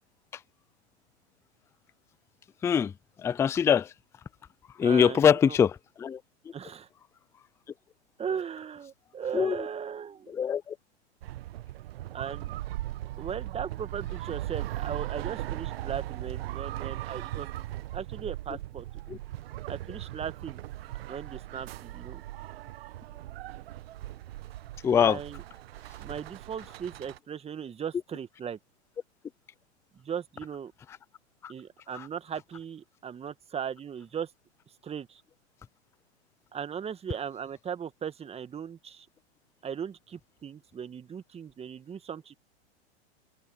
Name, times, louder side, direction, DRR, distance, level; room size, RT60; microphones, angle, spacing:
voice 1, 2.6-2.9 3.2-3.9 4.8-6.2 9.3-9.7 10.3-10.8 19.1-19.2 24.8-25.2 31.4-31.5 31.9-32.1, left 7 dB, 10° left, 0.4 m, -23 dB
voice 2, 4.8-5.6 6.5-6.9 8.2-10.4 12.1-12.5 13.2-17.6 17.9-18.9 19.7-20.6 21.1-22.2 24.9-25.4 26.0-28.6 29.9-30.7 31.5-34.3 34.8-35.2 36.5-39.1 39.6-42.3, right 7 dB, 15° right, 1.8 m, -38 dB
sound 1, 11.2-27.2, right 15 dB, 60° right, 1.5 m, -38 dB
hypercardioid pair, 110°, 34 cm